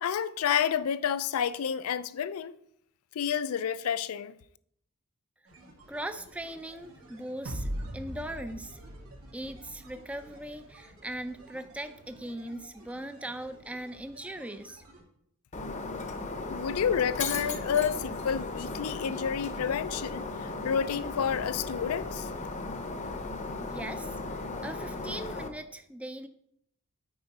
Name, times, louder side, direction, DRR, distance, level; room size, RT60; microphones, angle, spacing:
voice 1, 0.0-2.5 3.1-4.4 16.5-22.3, left 8 dB, 75° left, 0.4 m, -30 dB
sound 1, 5.4-15.0, right 2 dB, 80° right, 2.4 m, -54 dB
voice 2, 5.9-8.8 9.3-14.8 23.6-24.1 24.4-26.3, right 1 dB, 5° right, 0.4 m, -39 dB
sound 2, 7.5-10.7, equal, 60° right, 0.9 m, -40 dB
Shatter, 15.5-25.5, left 3 dB, 35° left, 0.7 m, -36 dB
8.7 x 4.7 x 4.1 m
head